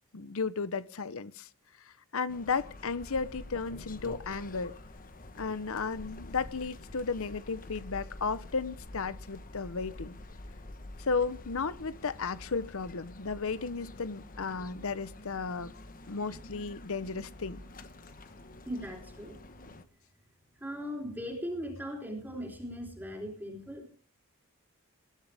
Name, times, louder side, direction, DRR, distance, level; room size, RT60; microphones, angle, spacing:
voice 1, 0.1-1.5 2.1-4.7 5.4-10.2 11.0-15.7 16.1-17.6, left 4 dB, 65° left, 0.8 m, -34 dB
sound 1, 2.3-19.8, left 2 dB, 40° left, 1.1 m, -47 dB
voice 2, 18.7-19.4 20.5-23.9, equal, 10° right, 3.6 m, -39 dB
20.5 x 11.5 x 3.5 m
head